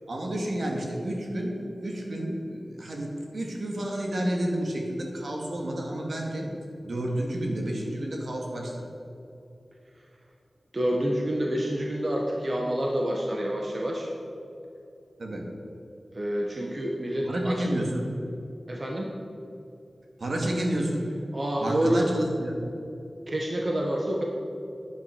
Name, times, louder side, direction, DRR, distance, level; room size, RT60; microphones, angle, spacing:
voice 1, 0.1-1.6 1.8-6.5 6.8-8.8 15.2-15.4 17.2-18.1 20.2-21.1 21.6-22.6, right 1 dB, 70° right, 0 dB, 2.3 m, -30 dB
voice 2, 10.7-14.1 16.1-17.6 18.7-19.1 21.3-22.1 23.3-24.2, right 1 dB, 45° right, -1 dB, 1.4 m, -27 dB
10.5 x 9.8 x 6.4 m, 2.8 s
wide cardioid pair, 70°, 0 cm